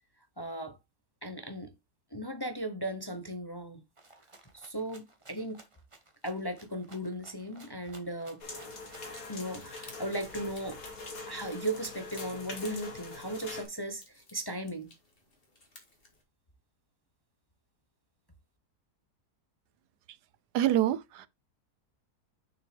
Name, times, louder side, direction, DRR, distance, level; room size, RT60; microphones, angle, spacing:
voice 1, 0.4-0.8 1.2-1.7 2.1-3.8 4.5-5.6 6.2-8.4 9.3-10.8 11.3-14.9, right 1 dB, 20° left, 0.7 m, -37 dB
Rattle (instrument), 4.0-9.2, right 2 dB, 20° right, 1.3 m, -57 dB
sound 1, 8.4-13.6, left 3 dB, 60° left, 2.6 m, -43 dB
sound 2, 9.0-16.2, left 2 dB, 35° left, 2.6 m, -57 dB
voice 2, 20.5-21.3, right 12 dB, 85° right, 1.3 m, -26 dB
6.5 x 6.1 x 3.3 m
omnidirectional pair, 1.7 m